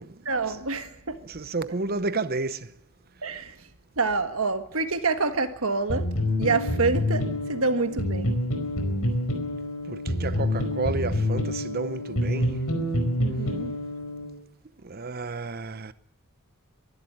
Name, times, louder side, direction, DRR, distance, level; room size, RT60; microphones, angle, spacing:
voice 1, 0.2-1.2 3.2-3.6 4.0-6.1 6.4-8.4 13.2-13.7, right 3 dB, 70° right, 1.6 m, -27 dB
voice 2, 1.3-2.7 9.9-12.6 14.8-15.9, right 3 dB, 45° right, 0.9 m, -31 dB
sound 1, 5.9-14.3, left 1 dB, 85° left, 4.8 m, -27 dB
24.0 x 12.0 x 10.0 m
head